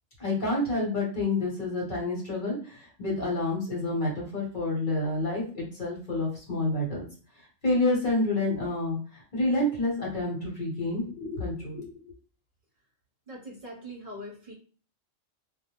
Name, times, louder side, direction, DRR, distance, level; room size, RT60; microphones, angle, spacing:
voice 1, 0.2-7.0 7.6-11.9, left 2 dB, 45° left, -3 dB, 1.0 m, -28 dB
voice 2, 13.3-14.5, equal, 50° right, -3 dB, 1.0 m, -42 dB
2.3 x 2.1 x 2.9 m, 0.40 s
omnidirectional pair, 1.2 m